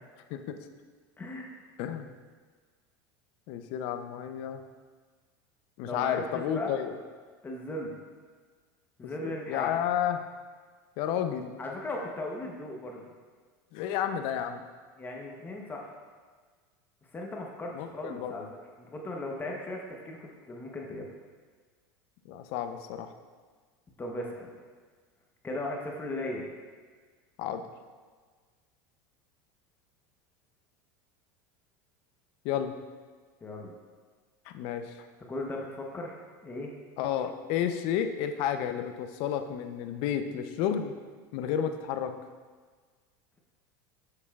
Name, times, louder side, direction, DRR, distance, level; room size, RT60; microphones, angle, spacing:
voice 1, 1.2-1.5 5.9-6.7 7.4-8.0 9.0-9.8 11.6-13.0 15.0-15.9 17.1-18.5 18.9-21.1 24.0-24.5 25.4-26.5 33.4-33.7 35.3-36.7, left 1 dB, 20° left, 0 dB, 0.8 m, -37 dB
voice 2, 1.8-2.1 3.5-4.6 5.8-6.9 9.0-10.2 11.0-11.6 13.7-14.6 17.7-18.3 22.3-23.1 27.4-27.6 32.4-32.7 34.5-34.9 37.0-40.9 41.3-42.1, left 9 dB, 60° left, 8 dB, 0.5 m, -31 dB
7.1 x 6.6 x 2.3 m, 1.5 s
supercardioid pair, 115°, 10 cm